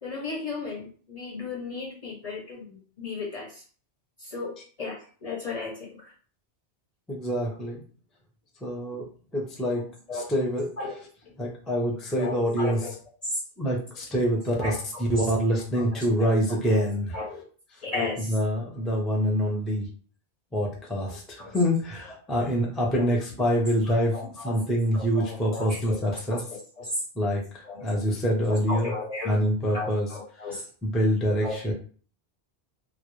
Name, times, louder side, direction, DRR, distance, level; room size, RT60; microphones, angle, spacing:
voice 1, 0.0-3.6 4.2-6.1 10.1-10.3 10.8-11.0 12.2-12.9 13.2-13.4 14.6-14.8 15.1-15.2 15.8-16.3 16.7-16.9 17.1-17.4 17.8-18.4 21.1-21.5 23.0-23.1 24.1-24.6 24.9-26.0 26.3-27.0 27.6-27.9 28.5-29.4 29.7-30.7 31.4-31.7, left 3 dB, 45° left, -2 dB, 0.6 m, -35 dB
voice 2, 7.1-7.8 8.6-9.1 9.3-9.8 10.1-10.7 11.4-12.8 13.6-17.2 17.7-17.8 18.3-19.9 20.5-26.4 27.2-28.9 29.2-30.1 30.8-31.7, equal, ahead, -1 dB, 0.4 m, -26 dB
2.3 x 2.0 x 3.0 m, 0.41 s
omnidirectional pair, 1.1 m